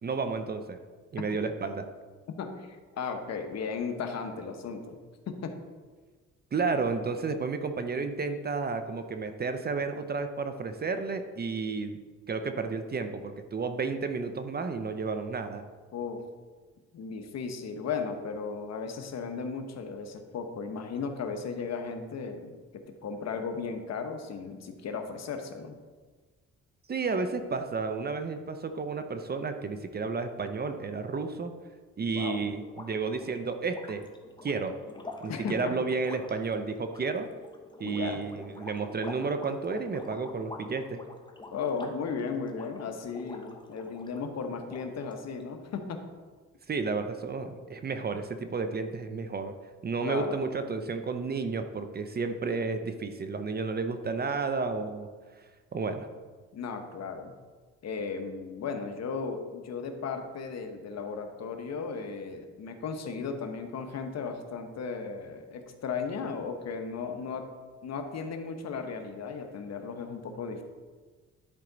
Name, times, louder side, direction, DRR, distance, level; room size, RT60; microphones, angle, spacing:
voice 1, 0.0-0.8 1.1-1.8 6.5-12.0 12.3-15.6 26.9-31.6 32.0-34.0 34.4-34.8 35.2-37.3 37.8-41.0 46.7-49.5 49.8-55.1 55.7-56.1, right 4 dB, 30° right, 8 dB, 0.6 m, -32 dB
voice 2, 2.4-5.0 5.3-5.6 15.9-16.2 16.9-25.8 32.1-32.5 35.3-35.8 37.8-38.2 41.5-46.0 50.0-50.4 56.5-57.3 57.8-67.5 67.8-70.6, left 5 dB, 60° left, 6 dB, 1.0 m, -36 dB
sound 1, 32.6-44.2 44.6-45.4, left 2 dB, 15° left, 1.0 m, -46 dB
11.0 x 4.5 x 3.9 m, 1.4 s
cardioid pair, 90°, 30 cm